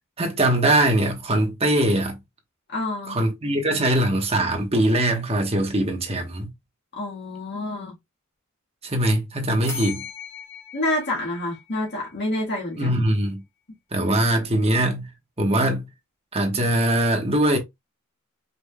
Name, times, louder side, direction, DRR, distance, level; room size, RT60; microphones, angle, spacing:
voice 1, 0.2-2.2 3.1-6.5 8.8-10.0 12.8-13.4 13.9-15.1 15.4-15.8 16.3-17.6, right 1 dB, 30° right, 1.1 m, -21 dB
voice 2, 2.7-3.2 6.9-8.0 10.7-13.0, left 1 dB, 55° left, 1.5 m, -28 dB
sound 1, 9.7-12.4, left 5 dB, 15° left, 1.4 m, -38 dB
5.2 x 3.4 x 2.2 m
head